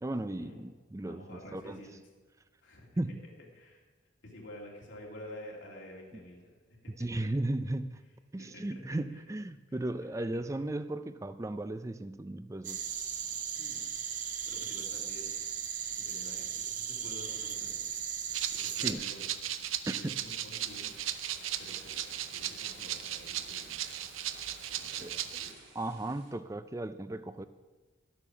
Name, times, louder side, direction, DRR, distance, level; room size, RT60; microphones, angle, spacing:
voice 1, 0.0-1.8 3.0-3.2 7.0-8.0 8.3-12.8 18.8-19.0 19.9-20.1 25.0-25.1 25.7-27.5, right 1 dB, 15° right, 12 dB, 0.4 m, -36 dB
voice 2, 1.0-1.9 2.6-2.9 3.5-3.8 4.2-7.2 8.3-8.6 10.2-10.4 13.6-13.8 14.5-15.4 16.0-17.8 18.5-19.2 20.0-20.9 21.6-23.9 24.7-25.6, left 1 dB, 75° left, -3 dB, 2.3 m, -50 dB
sound 1, 12.6-18.9, right 8 dB, 40° right, 0.7 m, -37 dB
Rattle (instrument), 18.3-25.5, right 11 dB, 85° right, 0.6 m, -37 dB
sound 2, 20.6-26.3, right 2 dB, 60° right, 3.8 m, -54 dB
12.0 x 8.5 x 5.9 m, 1.3 s
head